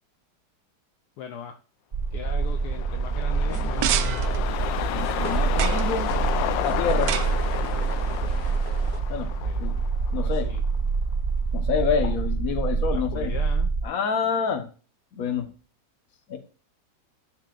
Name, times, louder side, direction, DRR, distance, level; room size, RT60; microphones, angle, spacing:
voice 1, 1.2-1.6 2.1-4.2 9.4-10.6 12.9-13.7, left 8 dB, 70° left, 6 dB, 1.3 m, -40 dB
sound 1, 1.9-13.8, right 4 dB, 55° right, 0.6 m, -26 dB
sound 2, 2.3-10.8 11.1-11.2, left 11 dB, 90° left, 1.3 m, -32 dB
sound 3, 3.5-9.0, right 11 dB, 70° right, 1.0 m, -33 dB
voice 2, 4.9-6.1 6.6-7.2 9.1-9.3 9.6-9.8 10.1-10.5 11.5-13.3 13.8-14.7 15.1-15.5 16.3-16.4, left 6 dB, 55° left, 7 dB, 1.5 m, -27 dB
11.0 x 6.9 x 2.4 m, 0.38 s
omnidirectional pair, 1.9 m